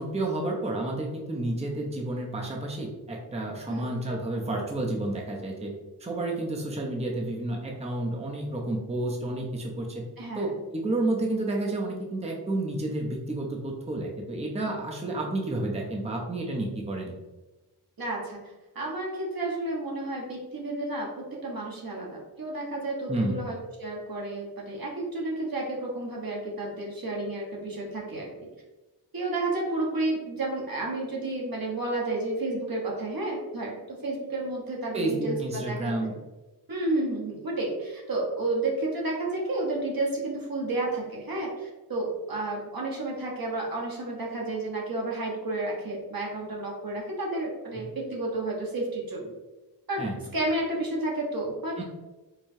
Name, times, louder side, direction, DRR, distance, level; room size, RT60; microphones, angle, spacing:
voice 1, 0.0-5.7 6.0-10.0 10.3-17.1 23.1-23.4 34.9-36.1 47.7-47.8 50.0-50.2 51.8-51.9, right 2 dB, 15° right, -1 dB, 0.6 m, -30 dB
voice 2, 10.2-10.5 18.0-18.4 18.7-28.3 29.1-36.1 36.7-49.3 49.9-50.0 50.3-51.8, right 2 dB, 60° right, -3 dB, 1.2 m, -31 dB
4.7 x 2.3 x 2.7 m, 1.1 s
wide cardioid pair, 65°, 40 cm